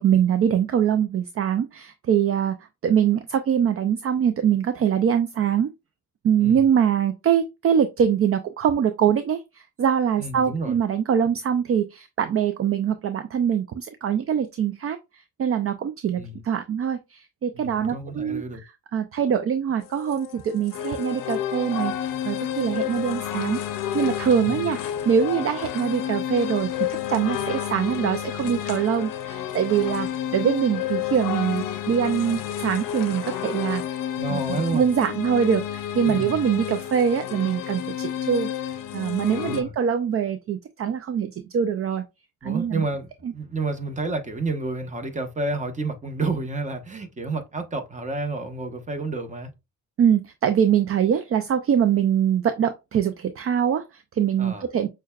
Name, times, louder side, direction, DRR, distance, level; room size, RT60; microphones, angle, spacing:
voice 1, 0.0-2.6 2.8-5.7 6.2-18.4 18.9-23.6 23.9-34.0 34.3-34.4 34.7-38.5 38.9-42.0 42.4-42.8 43.2-43.3 50.0-54.9, right 8 dB, 45° right, 0.4 m, -23 dB
voice 2, 10.2-10.8 16.2-16.4 17.5-18.6 24.4-24.6 34.2-34.9 36.0-36.4 39.4-39.7 42.4-49.5 54.4-54.7, right 3 dB, 25° right, 1.0 m, -30 dB
sound 1, 19.8-39.6, left 10 dB, 85° left, 0.6 m, -30 dB
6.1 x 2.3 x 2.3 m
cardioid pair, 80°, 32 cm